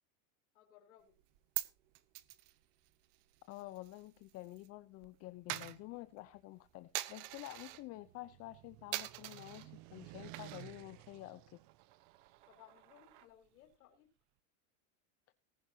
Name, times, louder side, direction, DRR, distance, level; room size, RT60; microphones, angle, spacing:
voice 1, 0.5-1.1 12.5-14.1, left 11 dB, 80° left, 1 dB, 4.2 m, -62 dB
Coin (dropping), 1.1-4.7 4.9-7.8 8.3-8.6 8.9-9.7 10.2-10.8 11.1-11.2 11.5-13.5, right 17 dB, 60° right, 1.1 m, -45 dB
voice 2, 3.5-11.6, left 17 dB, 35° left, 12 dB, 0.7 m, -49 dB
sound 1, 7.2-12.4, right 19 dB, 40° right, 0.7 m, -55 dB
19.5 x 10.5 x 2.8 m, 0.29 s
supercardioid pair, 145°, 43 cm